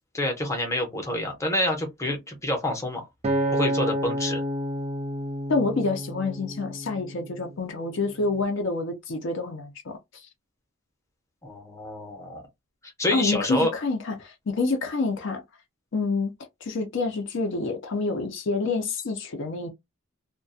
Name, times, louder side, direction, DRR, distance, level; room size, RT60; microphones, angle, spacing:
voice 1, 0.1-3.1 3.5-4.4 11.4-12.4 13.0-13.7, left 1 dB, 15° left, 0.7 m, -27 dB
Acoustic guitar, 3.2-7.6 8.2-8.4, equal, 30° right, 0.4 m, -29 dB
voice 2, 5.5-10.3 13.1-15.4 15.9-16.3 16.6-19.7, left 3 dB, 55° left, 0.5 m, -27 dB
2.3 x 2.2 x 2.6 m
head